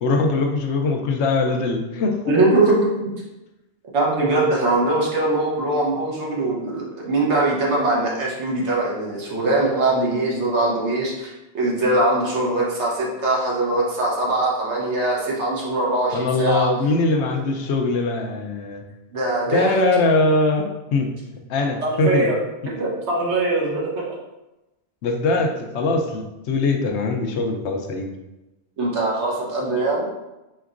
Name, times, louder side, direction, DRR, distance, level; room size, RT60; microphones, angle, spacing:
voice 1, 0.0-2.3 16.1-18.8 19.5-21.1 21.5-22.3 25.0-28.1, left 3 dB, 80° left, 3 dB, 0.9 m, -21 dB
voice 2, 2.3-3.1 3.9-16.7 19.1-19.8 21.8-22.4 22.7-24.1 28.8-30.1, right 2 dB, 75° right, -3 dB, 1.3 m, -22 dB
4.3 x 3.9 x 2.5 m, 1.0 s
omnidirectional pair, 1.2 m